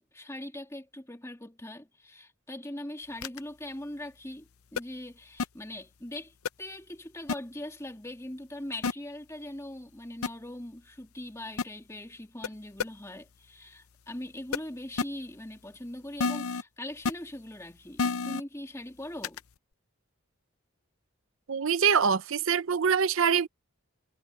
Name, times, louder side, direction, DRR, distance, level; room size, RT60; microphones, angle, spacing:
voice 1, 0.0-19.4, left 1 dB, 15° left, 2.4 m, -41 dB
sound 1, 3.2-3.4 4.8-4.9 5.4-5.5 6.5-6.6 7.3-7.4 8.8-8.9 10.2-10.3 11.6-11.7 12.4-12.5 12.8-12.9 14.5-14.6 15.0-15.1 16.2-16.6 17.1-17.2 18.0-18.4 19.2-19.4, left 4 dB, 80° left, 0.6 m, -28 dB
voice 2, 21.5-23.5, right 6 dB, 65° right, 0.6 m, -24 dB
head